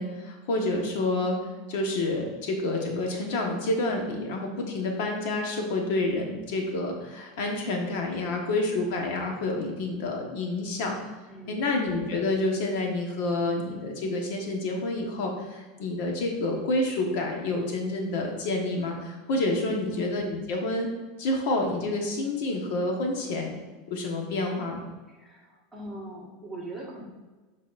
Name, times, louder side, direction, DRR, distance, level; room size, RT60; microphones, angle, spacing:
voice 1, 0.0-1.4 1.7-11.0 11.5-20.9 21.2-23.5 23.9-24.8, left 2 dB, 65° left, 1 dB, 1.2 m, -28 dB
voice 2, 8.1-8.6 11.3-11.6 19.6-19.9 25.1-27.0, right 1 dB, 5° right, -6 dB, 1.6 m, -41 dB
11.0 x 4.0 x 2.5 m, 1.3 s
supercardioid pair, 155°, 0 cm